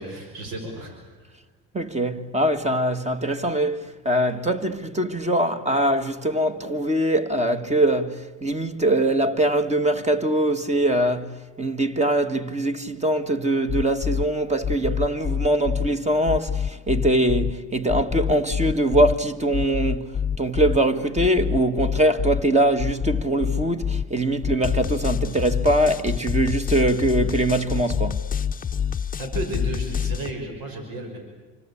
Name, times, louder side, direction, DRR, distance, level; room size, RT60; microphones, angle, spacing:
voice 1, 0.0-1.4 29.2-31.2, right 2 dB, 70° right, 6.2 m, -33 dB
voice 2, 1.7-28.2, right 1 dB, 20° right, 1.9 m, -22 dB
sound 1, 13.7-14.3 14.6-15.9 16.3-17.5 17.9-19.1 19.5-20.8 21.2-22.4 22.8-24.0 24.4-30.3, left 8 dB, 25° left, 0.9 m, -26 dB
27.5 x 24.5 x 8.6 m
supercardioid pair, 90°, 36 cm